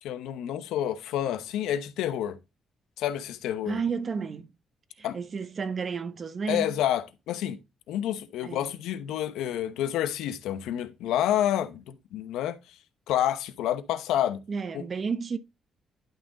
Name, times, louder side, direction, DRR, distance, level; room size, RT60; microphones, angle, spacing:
voice 1, 0.0-2.4 3.0-3.8 5.0-5.2 6.5-7.6 7.9-12.6 13.1-14.4 14.7-14.8, left 11 dB, 90° left, 0.9 m, -29 dB
voice 2, 3.7-4.5 5.0-6.8 8.4-8.7 14.5-15.4, right 5 dB, 45° right, 0.9 m, -32 dB
11.5 x 3.8 x 4.0 m
cardioid pair, 90°, 0 cm